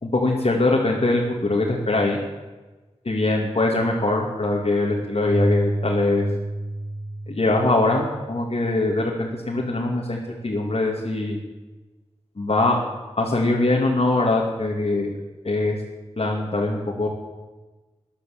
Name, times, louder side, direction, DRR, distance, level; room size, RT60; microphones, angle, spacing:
voice 1, 0.0-2.2 3.0-6.2 7.3-10.2 10.4-11.4 12.4-12.8 13.2-15.2 15.4-15.8 16.2-17.1, left 2 dB, 55° left, -3 dB, 2.6 m, -22 dB
Keyboard (musical), 5.2-8.8, right 1 dB, 65° right, 4.5 m, -28 dB
13.5 x 10.5 x 7.9 m, 1.2 s
cardioid pair, 45°, 12 cm